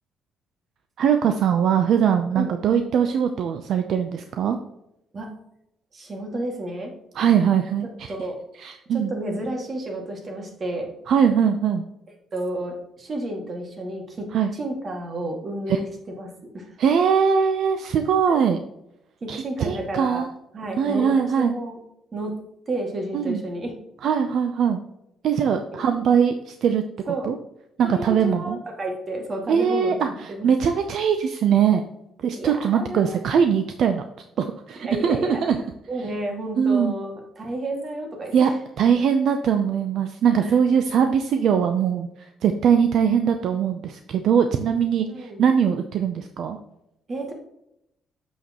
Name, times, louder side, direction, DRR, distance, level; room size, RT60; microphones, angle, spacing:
voice 1, 1.0-4.6 7.1-8.1 8.6-9.1 11.1-11.8 14.3-14.5 15.7-15.8 16.8-18.6 19.3-20.3 20.8-21.5 23.1-23.4 24.0-24.8 25.2-26.8 27.2-27.4 27.8-28.6 29.5-31.8 32.2-34.0 34.4-35.6 36.6-36.9 38.3-38.5 38.8-46.6, right 7 dB, 70° right, 7 dB, 0.6 m, -21 dB
voice 2, 5.9-6.9 8.1-8.4 8.9-10.9 12.3-14.3 14.5-16.8 18.3-18.4 19.2-20.2 20.5-21.8 22.1-22.3 22.7-23.7 25.7-25.9 27.1-27.4 27.8-30.5 32.3-33.3 34.7-35.4 35.9-38.5 40.4-40.6 45.1-45.4 47.1-47.3, right 1 dB, 40° right, 2 dB, 2.1 m, -31 dB
7.1 x 6.3 x 3.0 m, 0.82 s
cardioid pair, 90°, 0 cm